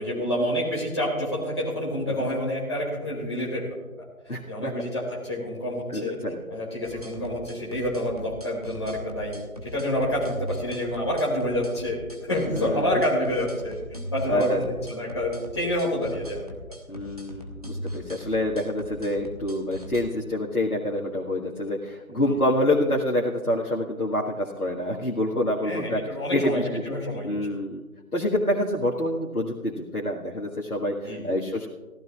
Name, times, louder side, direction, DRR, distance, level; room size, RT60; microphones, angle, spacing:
voice 1, 0.0-3.7 4.2-6.2 6.5-16.5 22.1-22.3 25.6-26.6 26.9-27.4 31.0-31.3, equal, 20° left, -5 dB, 2.4 m, -28 dB
voice 2, 4.3-4.7 5.9-6.4 12.4-13.0 14.3-14.6 16.9-26.0 26.3-26.8 27.2-27.8 28.1-31.7, left 1 dB, 85° left, -3 dB, 1.9 m, -27 dB
sound 1, 6.8-20.0, equal, 25° right, 1.2 m, -39 dB
24.0 x 15.0 x 2.4 m, 1.2 s
figure-of-eight pair, 165°, 44 cm